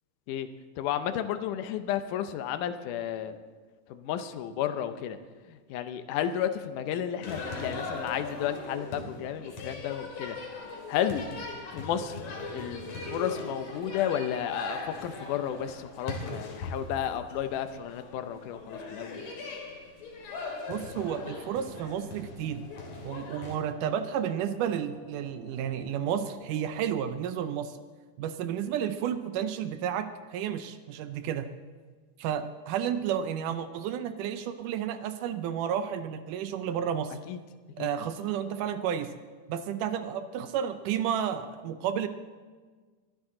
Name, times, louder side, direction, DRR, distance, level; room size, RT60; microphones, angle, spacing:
voice 1, 0.8-3.4 3.9-5.2 5.5-10.4 10.9-11.3 11.7-12.2 12.5-19.2 37.3-37.4 37.8-37.9, left 10 dB, 75° left, 9 dB, 2.1 m, -32 dB
sound 1, 7.2-23.6, left 3 dB, 55° left, 3.0 m, -39 dB
sound 2, 20.7-26.9, left 2 dB, 35° left, 5.0 m, -52 dB
voice 2, 20.7-22.6 23.0-27.8 28.2-31.5 32.2-37.2 37.8-39.1 39.5-42.1, right 9 dB, 80° right, 10 dB, 2.0 m, -31 dB
22.5 x 10.5 x 3.8 m, 1.5 s
omnidirectional pair, 4.0 m